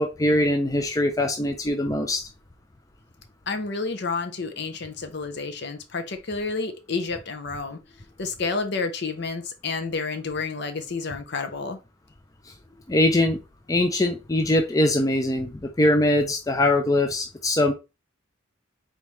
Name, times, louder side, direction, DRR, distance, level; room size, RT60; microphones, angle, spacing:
voice 1, 0.0-2.2 12.9-13.4 13.7-17.7, left 1 dB, 15° left, 0.4 m, -22 dB
voice 2, 3.5-7.8 8.2-11.8, left 4 dB, 55° left, 0.7 m, -30 dB
4.1 x 3.5 x 3.1 m
head